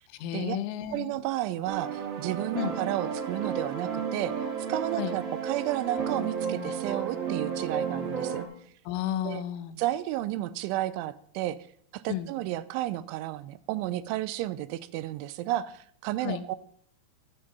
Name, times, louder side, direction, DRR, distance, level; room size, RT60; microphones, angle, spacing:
voice 1, 0.1-1.1 2.6-2.8 5.0-5.2 8.9-9.8 12.1-12.3 16.2-16.4, left 11 dB, 85° left, 10 dB, 3.3 m, -32 dB
voice 2, 0.9-4.4 4.7-8.4 9.2-9.4 9.8-11.6 11.9-16.6, right 14 dB, 90° right, 16 dB, 3.1 m, -32 dB
sound 1, 1.7-8.4, right 6 dB, 55° right, 3.9 m, -32 dB
12.5 x 12.0 x 4.1 m, 0.63 s
omnidirectional pair, 5.4 m